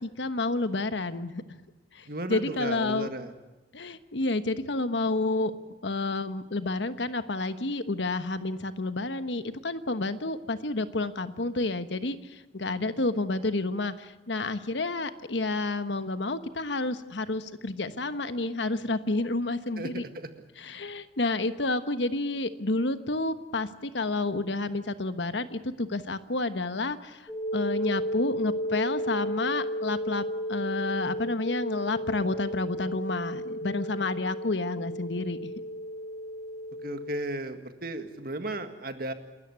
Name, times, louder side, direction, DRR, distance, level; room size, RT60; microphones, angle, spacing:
voice 1, 0.0-1.4 1.9-3.1 3.7-5.5 5.8-20.0 20.6-35.5, left 2 dB, 80° left, 11 dB, 1.2 m, -30 dB
voice 2, 2.1-3.3 19.8-20.3 36.8-39.1, right 2 dB, 55° right, 8 dB, 1.9 m, -35 dB
sound 1, 27.3-37.2, equal, 10° left, 2.8 m, -33 dB
28.5 x 13.5 x 9.5 m, 1.1 s
head